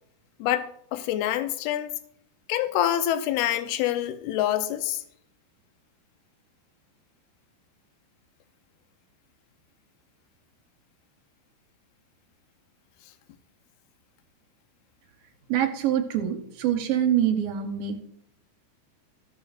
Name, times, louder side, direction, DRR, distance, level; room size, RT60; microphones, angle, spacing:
voice 1, 0.4-1.9 2.5-5.0, left 12 dB, 80° left, 2.6 m, -26 dB
voice 2, 15.5-18.0, right 10 dB, 70° right, 2.4 m, -25 dB
15.0 x 12.5 x 2.5 m
omnidirectional pair, 4.8 m